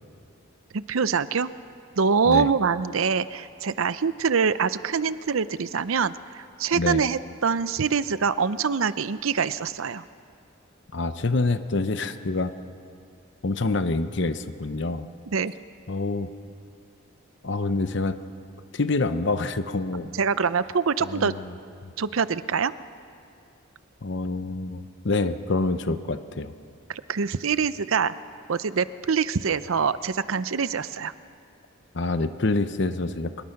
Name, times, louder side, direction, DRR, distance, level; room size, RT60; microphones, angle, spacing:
voice 1, 0.7-1.5 2.0-10.0 15.3-15.5 20.1-21.3 22.0-22.7 26.9-28.1 28.5-31.1, right 5 dB, 80° right, 15 dB, 0.6 m, -25 dB
voice 2, 10.9-12.5 13.4-15.1 15.9-16.3 17.4-18.2 18.7-20.1 21.0-21.5 21.8-21.9 24.0-26.5 31.9-33.4, left 3 dB, 55° left, 11 dB, 0.8 m, -26 dB
25.0 x 21.5 x 5.9 m, 2.4 s
head